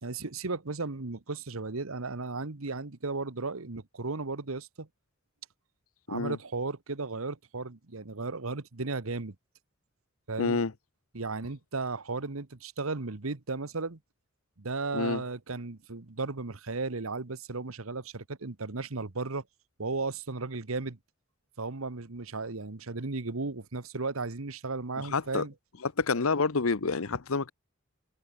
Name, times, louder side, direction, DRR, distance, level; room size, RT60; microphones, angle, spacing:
voice 1, 0.0-4.9 6.1-9.3 10.3-10.6 11.1-14.0 14.6-19.4 19.8-21.0 21.6-25.5, right 3 dB, 85° right, 1.3 m, -35 dB
voice 2, 10.4-10.7 14.9-15.2 25.0-25.4 25.8-27.5, left 4 dB, 90° left, 1.0 m, -28 dB
head